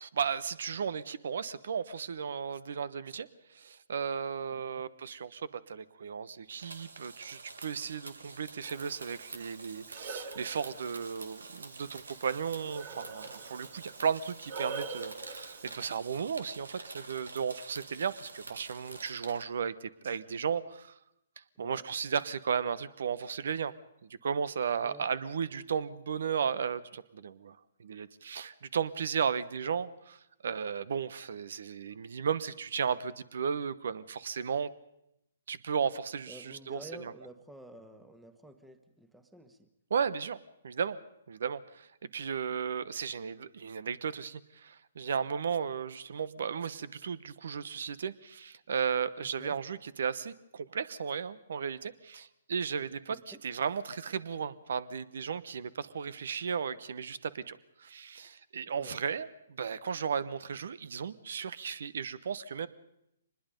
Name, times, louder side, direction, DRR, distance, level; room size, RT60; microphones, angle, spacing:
voice 1, 0.0-21.0 21.4-23.8 24.2-34.7 35.5-37.1 39.9-40.4 40.6-41.0 41.3-62.7, right 6 dB, 65° right, 18 dB, 1.0 m, -35 dB
sound 1, 6.5-19.4, right 3 dB, 90° right, 1.8 m, -48 dB
Breathing, 8.6-15.8, right 4 dB, 40° right, 2.2 m, -45 dB
voice 2, 36.3-39.7 49.4-49.6 53.1-53.4 58.7-59.0, right 1 dB, 5° right, 9 dB, 1.5 m, -50 dB
24.5 x 20.5 x 5.3 m, 0.80 s
hypercardioid pair, 135°, 0 cm